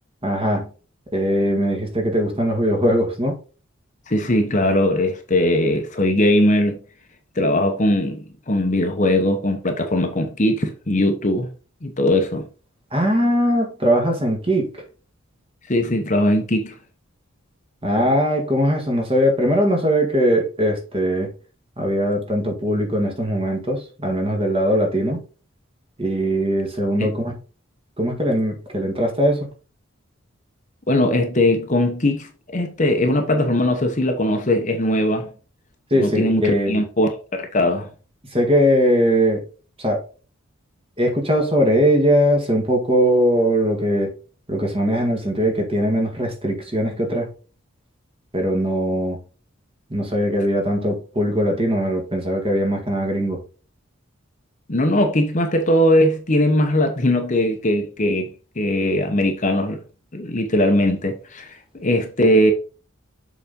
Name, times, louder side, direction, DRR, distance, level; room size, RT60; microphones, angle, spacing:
voice 1, 0.2-0.7 1.1-3.4 12.9-14.7 17.8-21.3 21.8-25.2 26.0-27.3 28.0-29.5 35.9-36.8 38.3-39.4 39.8-40.0 41.0-44.1 44.5-47.3 48.3-49.2 49.9-53.4, equal, 25° right, 1.7 m, -20 dB
voice 2, 4.1-6.8 7.4-11.5 11.8-12.4 15.7-16.7 27.0-27.1 30.9-35.3 36.0-37.9 54.7-59.8 60.1-62.5, left 1 dB, 35° left, 0.9 m, -20 dB
7.0 x 4.2 x 3.7 m
head